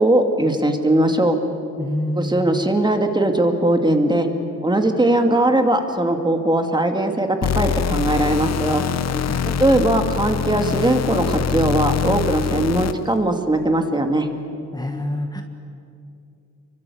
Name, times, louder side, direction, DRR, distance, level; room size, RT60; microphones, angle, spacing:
voice 1, 0.0-1.4 2.1-4.3 4.6-8.8 9.6-14.3, right 1 dB, 15° right, 5 dB, 2.4 m, -19 dB
voice 2, 1.8-2.6 9.3-9.8 10.2-10.3 14.7-15.4, left 1 dB, 15° left, 4 dB, 1.7 m, -27 dB
sound 1, 7.4-13.2, left 8 dB, 60° left, 1.0 m, -24 dB
27.5 x 24.0 x 8.6 m, 2.6 s
cardioid pair, 110°, 30 cm